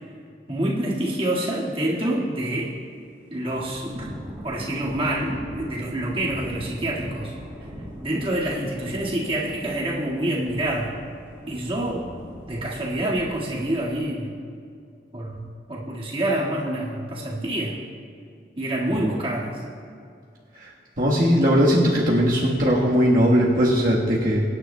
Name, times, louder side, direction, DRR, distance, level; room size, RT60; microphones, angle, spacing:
voice 1, 0.5-2.7 3.3-4.1 4.4-7.3 8.0-10.9 11.5-12.1 12.4-14.3 15.1-17.8 18.6-19.6, right 1 dB, 30° right, -5 dB, 1.8 m, -27 dB
Thunder / Rain, 3.5-14.0, equal, 10° right, 3.0 m, -40 dB
voice 2, 18.9-19.3 20.5-20.7 21.0-24.4, equal, 50° right, -5 dB, 1.3 m, -19 dB
24.0 x 9.7 x 2.2 m, 2.4 s
head